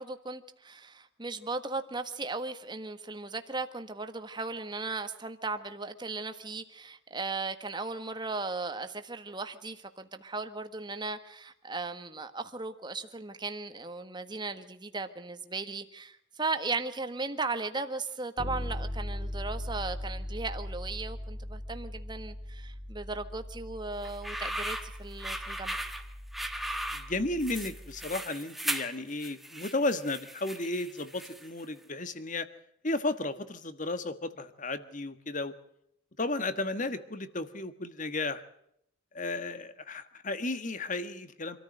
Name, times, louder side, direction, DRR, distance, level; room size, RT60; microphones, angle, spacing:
voice 1, 0.0-25.8, right 3 dB, 20° right, 9 dB, 1.5 m, -37 dB
Bass guitar, 18.4-28.1, left 1 dB, 15° left, 2.9 m, -40 dB
sound 1, 24.0-31.6, right 1 dB, ahead, 1.3 m, -37 dB
voice 2, 26.9-32.5 32.8-35.5 36.2-38.4 39.1-41.6, left 2 dB, 40° left, 12 dB, 1.6 m, -33 dB
26.5 x 14.0 x 7.7 m, 0.75 s
head